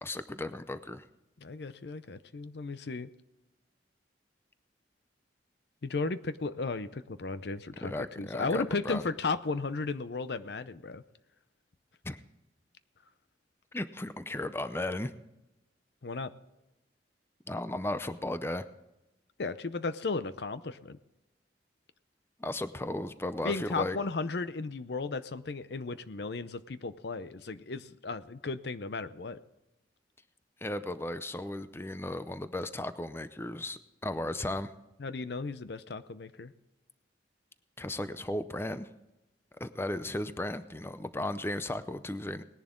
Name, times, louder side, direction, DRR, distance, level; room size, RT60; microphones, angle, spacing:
voice 1, 0.0-1.0 7.8-9.0 12.0-12.2 13.7-15.1 17.5-18.7 22.4-24.0 30.6-34.7 37.8-38.9 39.6-42.4, left 1 dB, 15° left, 12 dB, 0.5 m, -35 dB
voice 2, 1.4-3.1 5.8-11.0 16.0-16.3 19.4-21.0 23.4-29.4 35.0-36.5, left 3 dB, 65° left, 14 dB, 0.6 m, -35 dB
19.0 x 10.5 x 3.7 m, 0.97 s
head